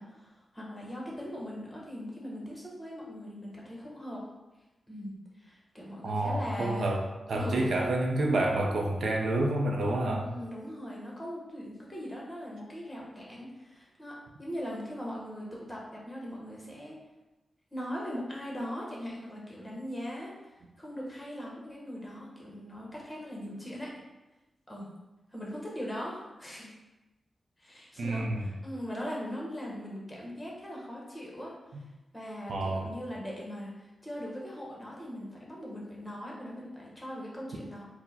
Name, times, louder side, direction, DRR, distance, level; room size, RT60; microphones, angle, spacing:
voice 1, 0.0-4.2 4.9-6.9 7.3-7.8 10.2-17.0 17.7-23.9 24.7-24.9 25.3-26.7 27.6-31.5 32.1-37.9, equal, 15° left, -4 dB, 1.0 m, -40 dB
voice 2, 6.0-10.3 28.0-28.4 32.5-32.9, right 1 dB, 75° right, 1 dB, 0.5 m, -29 dB
4.5 x 2.1 x 4.1 m, 1.1 s
wide cardioid pair, 125°, 0 cm